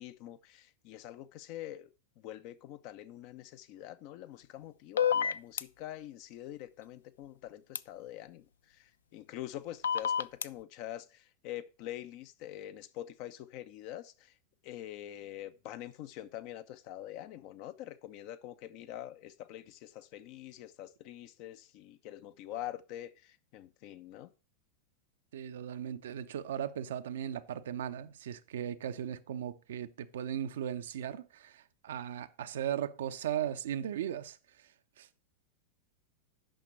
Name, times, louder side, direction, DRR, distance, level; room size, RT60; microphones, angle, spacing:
voice 1, 0.0-1.9 2.2-14.3 14.6-24.3, left 13 dB, 45° left, 0.8 m, -45 dB
sound 1, 5.0-5.6 7.8-7.9 9.8-10.5, left 8 dB, 65° left, 0.4 m, -28 dB
voice 2, 25.3-34.7 35.0-35.1, right 10 dB, 60° right, 0.7 m, -37 dB
8.9 x 6.0 x 6.1 m
figure-of-eight pair, 90°, 0 cm